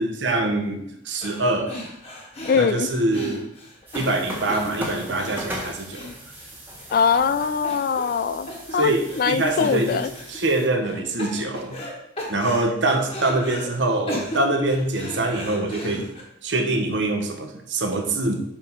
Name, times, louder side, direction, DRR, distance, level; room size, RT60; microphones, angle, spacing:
voice 1, 0.0-1.8 2.6-3.5 3.9-6.1 8.7-10.0 10.3-11.8 12.3-16.1 16.4-18.4, right 2 dB, 75° right, 5 dB, 1.0 m, -24 dB
sound 1, 1.2-1.4 1.7-6.8 7.2-7.3 7.6-8.2 8.5-9.3 9.6-10.4 10.8-11.9 12.2-13.7 14.1-16.2, left 1 dB, 30° left, 1.4 m, -36 dB
voice 2, 2.4-2.9 6.9-8.9 9.2-10.1, left 6 dB, 50° left, 14 dB, 0.3 m, -22 dB
sound 2, 3.9-10.7, equal, 10° right, 1.3 m, -38 dB
5.5 x 4.8 x 5.4 m, 0.78 s
head